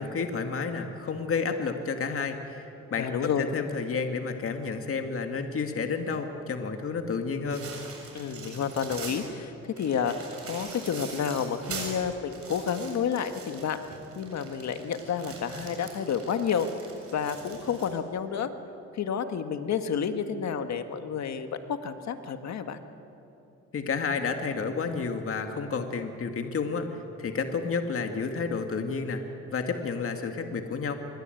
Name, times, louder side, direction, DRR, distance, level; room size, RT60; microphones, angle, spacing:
voice 1, 0.0-7.7 23.7-29.2 29.5-30.9, left 5 dB, 45° left, 5 dB, 2.2 m, -31 dB
voice 2, 3.0-3.5 8.1-10.1 10.5-13.8 14.2-16.7 17.1-18.5 18.9-22.8, left 7 dB, 65° left, 8 dB, 1.9 m, -30 dB
sound 1, 7.5-9.3 9.8-17.9, right 4 dB, 50° right, 7.3 m, -42 dB
25.0 x 23.0 x 9.3 m, 2.9 s
cardioid pair, 90°, 30 cm